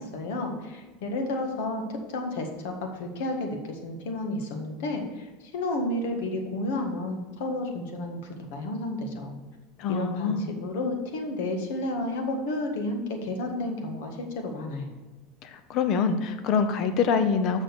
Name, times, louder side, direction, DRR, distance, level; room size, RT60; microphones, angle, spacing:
voice 1, 0.0-9.4 9.9-14.9, left 2 dB, 80° left, 3 dB, 1.6 m, -31 dB
voice 2, 9.8-10.5 15.4-17.6, left 5 dB, 40° left, 9 dB, 0.8 m, -25 dB
6.3 x 6.2 x 7.0 m, 1.3 s
supercardioid pair, 160°, 0 cm